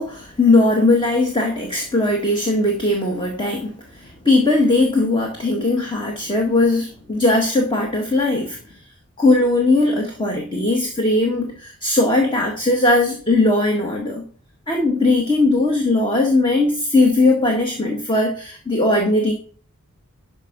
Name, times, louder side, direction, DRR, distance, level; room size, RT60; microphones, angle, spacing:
voice 1, 0.0-8.6 9.2-14.2 14.7-19.3, left 2 dB, 20° left, 1 dB, 1.7 m, -19 dB
12.0 x 5.0 x 6.0 m, 0.43 s
head